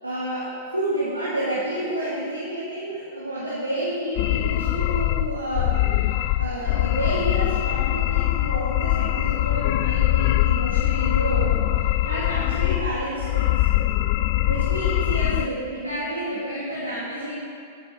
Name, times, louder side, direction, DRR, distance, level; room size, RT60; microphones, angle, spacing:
voice 1, 0.0-13.7 14.4-17.4, right 1 dB, 85° right, -8 dB, 2.1 m, -30 dB
sound 1, 4.2-15.5, left 15 dB, 45° left, 0.3 m, -22 dB
9.5 x 7.9 x 5.8 m, 2.3 s
figure-of-eight pair, 95°, 0 cm